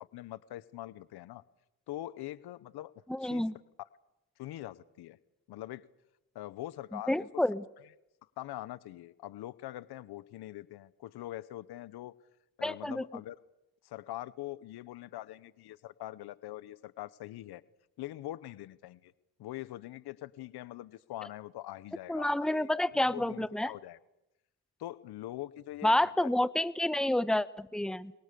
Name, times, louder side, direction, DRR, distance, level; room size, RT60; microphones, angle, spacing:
voice 1, 0.0-1.4 1.9-2.9 3.2-3.4 4.4-5.2 5.5-5.8 6.3-7.1 8.4-12.1 12.6-13.4 13.8-17.6 18.0-19.1 19.4-22.7 22.9-24.0 24.8-25.9 26.2-26.3, left 15 dB, 80° left, 18 dB, 1.1 m, -43 dB
voice 2, 3.1-3.5 6.9-7.6 12.6-13.0 22.1-23.7 25.8-28.1, left 1 dB, ahead, 15 dB, 1.1 m, -29 dB
30.0 x 22.5 x 6.9 m, 0.93 s
supercardioid pair, 70°, 38 cm